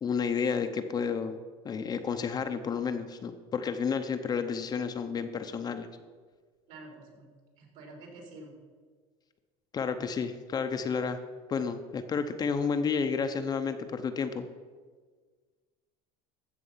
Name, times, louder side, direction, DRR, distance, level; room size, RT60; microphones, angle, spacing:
voice 1, 0.0-1.4 1.6-5.9 9.7-11.2 11.5-14.4, left 6 dB, 30° left, 7 dB, 0.8 m, -31 dB
voice 2, 6.7-8.6, right 2 dB, 60° right, 1 dB, 3.6 m, -49 dB
14.5 x 6.9 x 5.7 m, 1.5 s
supercardioid pair, 125°, 14 cm